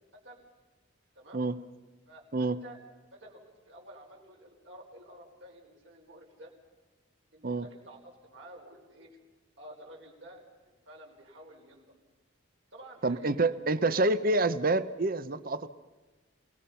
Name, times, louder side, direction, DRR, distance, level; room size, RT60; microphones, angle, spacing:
voice 1, 0.1-0.4 1.2-1.4 2.1-2.8 3.1-6.5 7.3-9.1 9.6-11.9 12.7-13.6, right 1 dB, 70° right, 0 dB, 5.1 m, -51 dB
voice 2, 13.0-15.7, right 2 dB, 45° right, 14 dB, 0.8 m, -27 dB
27.5 x 19.0 x 5.8 m, 1.2 s
head